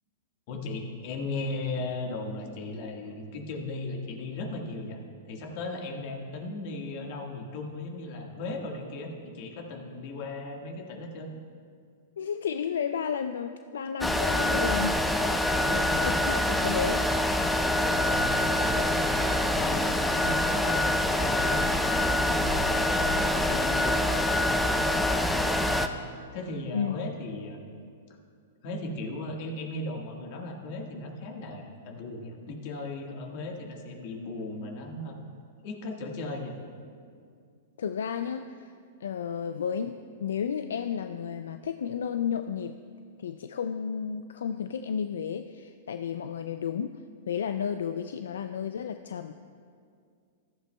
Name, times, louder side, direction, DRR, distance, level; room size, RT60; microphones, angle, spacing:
voice 1, 0.5-5.0 5.3-11.3 15.4-16.1 17.8-26.0 26.3-27.7 28.6-35.2 35.6-36.6, left 2 dB, 50° left, 2 dB, 1.6 m, -37 dB
voice 2, 12.2-15.1 15.7-17.1 26.7-27.0 37.8-38.7 39.0-40.0 40.2-42.7 43.2-47.0 47.3-49.3, left 7 dB, 80° left, 9 dB, 0.3 m, -32 dB
sound 1, 14.0-25.9, left 1 dB, 5° left, 0.5 m, -25 dB
14.5 x 13.0 x 2.3 m, 2.2 s
hypercardioid pair, 120°, 0 cm